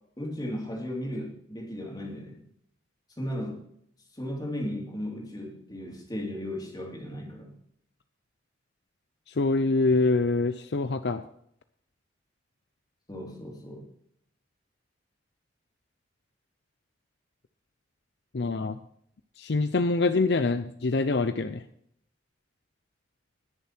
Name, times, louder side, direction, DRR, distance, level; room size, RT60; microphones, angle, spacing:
voice 1, 0.2-2.4 3.2-3.6 4.1-7.5 13.1-13.9, equal, 20° left, 0 dB, 3.1 m, -35 dB
voice 2, 9.4-11.2 18.3-18.8 19.4-21.6, left 3 dB, 65° left, 10 dB, 0.6 m, -25 dB
20.0 x 6.9 x 4.5 m, 0.68 s
head